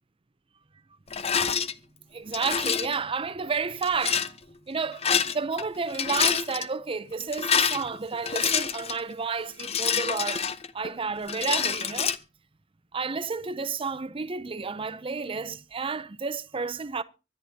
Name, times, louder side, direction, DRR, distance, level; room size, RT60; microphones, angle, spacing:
Rattle, 1.1-1.7 2.3-3.0 3.8-4.3 4.9-5.6 5.9-6.7 7.2-9.0 9.6-10.9 11.3-12.2, left 7 dB, 30° left, 0.6 m, -27 dB
voice 1, 2.1-4.4 4.7-10.5 10.7-12.2 12.9-17.0, right 5 dB, 25° right, 0.6 m, -31 dB
24.0 x 10.0 x 2.8 m
head